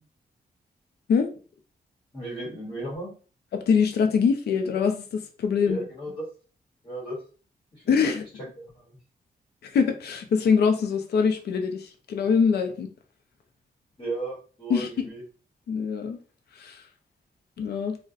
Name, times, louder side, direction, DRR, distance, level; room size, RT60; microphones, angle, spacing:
voice 1, 2.1-3.1 5.6-6.3 6.8-7.2 7.7-8.1 8.6-9.0 14.0-15.2, right 1 dB, 30° left, -6 dB, 1.0 m, -35 dB
voice 2, 3.5-5.8 7.9-8.2 9.6-12.9 14.7-14.9 15.7-16.2 16.6-16.8 17.6-18.0, left 6 dB, 80° left, 5 dB, 0.5 m, -23 dB
3.8 x 2.1 x 2.4 m, 0.38 s
wide cardioid pair, 175°, 16 cm